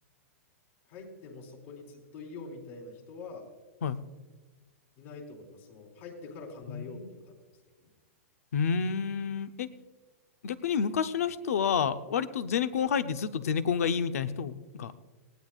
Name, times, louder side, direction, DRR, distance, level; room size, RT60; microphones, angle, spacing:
voice 1, 0.9-3.5 5.0-7.3 7.6-7.9, left 3 dB, 50° left, 0 dB, 4.1 m, -45 dB
voice 2, 6.7-7.1 8.5-9.7 10.4-15.0, left 7 dB, 85° left, 11 dB, 0.8 m, -29 dB
19.5 x 16.5 x 2.4 m, 1.2 s
hypercardioid pair, 145°, 8 cm